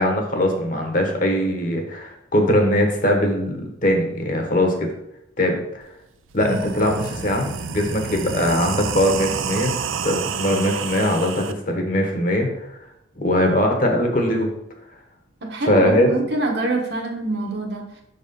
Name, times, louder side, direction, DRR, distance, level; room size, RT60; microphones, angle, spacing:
voice 1, 0.0-4.9 5.4-5.9 6.3-12.7 13.2-14.5 15.6-16.1, left 1 dB, 40° left, 3 dB, 1.1 m, -21 dB
sound 1, 5.8-5.9 6.3-11.5, right 6 dB, 80° right, 0.5 m, -29 dB
voice 2, 15.4-18.0, right 2 dB, 55° right, 1 dB, 1.2 m, -25 dB
6.2 x 4.1 x 5.3 m, 0.80 s
head